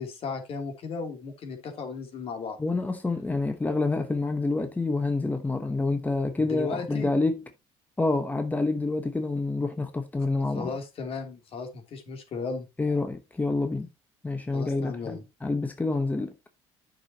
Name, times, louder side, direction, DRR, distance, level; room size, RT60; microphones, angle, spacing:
voice 1, 0.0-2.6 6.4-7.1 10.5-12.7 14.5-15.2, left 5 dB, 55° left, 2.9 m, -35 dB
voice 2, 2.6-7.4 8.0-10.7 12.8-13.9 14.2-16.3, left 3 dB, 15° left, 1.0 m, -27 dB
10.0 x 6.3 x 2.8 m
supercardioid pair, 85°, 12 cm